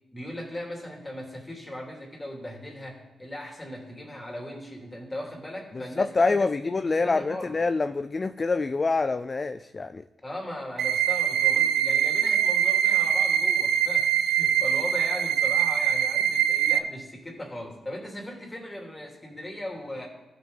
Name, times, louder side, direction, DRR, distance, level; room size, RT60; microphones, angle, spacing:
voice 1, 0.1-6.5 6.8-7.5 10.2-20.1, left 1 dB, 15° left, -1 dB, 2.9 m, -38 dB
voice 2, 5.7-10.0, left 3 dB, 35° left, 11 dB, 0.3 m, -26 dB
sound 1, 10.8-16.8, right 9 dB, 90° right, 0.6 m, -23 dB
15.5 x 5.9 x 3.9 m, 1.0 s
cardioid pair, 85°, 0 cm